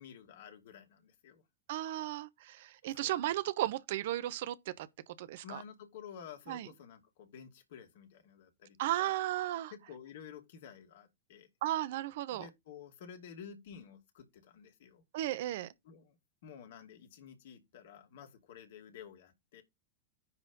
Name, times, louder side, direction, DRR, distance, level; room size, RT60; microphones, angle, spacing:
voice 1, 0.0-1.4 2.8-3.2 5.4-9.2 9.7-11.5 12.3-15.0 15.8-16.2 16.4-19.6, left 8 dB, 55° left, 2.6 m, -52 dB
voice 2, 1.7-4.9 5.2-5.6 6.5-6.7 8.8-9.7 11.6-12.5 15.1-15.7, right 14 dB, 55° right, 0.9 m, -35 dB
9.9 x 4.2 x 5.5 m
figure-of-eight pair, 90°, 0 cm